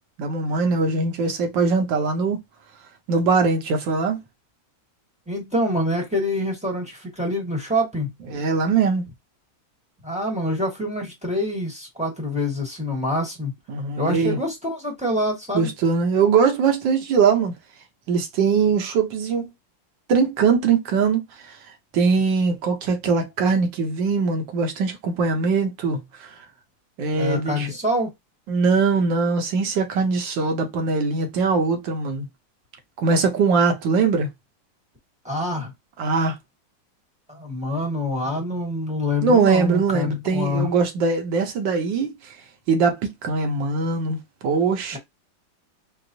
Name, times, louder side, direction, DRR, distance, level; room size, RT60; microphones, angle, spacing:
voice 1, 0.2-2.4 3.1-4.2 8.3-9.0 13.7-14.4 15.5-17.5 18.1-19.5 20.1-21.6 21.9-26.3 27.0-27.7 28.5-32.3 33.0-34.3 36.0-36.4 39.2-42.4 42.7-44.2 44.4-45.0, right 4 dB, 75° right, 1.6 m, -21 dB
voice 2, 5.3-8.1 10.0-13.5 14.0-15.7 27.2-28.1 35.2-35.7 37.3-40.7 44.9-45.0, left 1 dB, 5° right, 0.8 m, -26 dB
4.7 x 2.0 x 2.6 m
omnidirectional pair, 2.1 m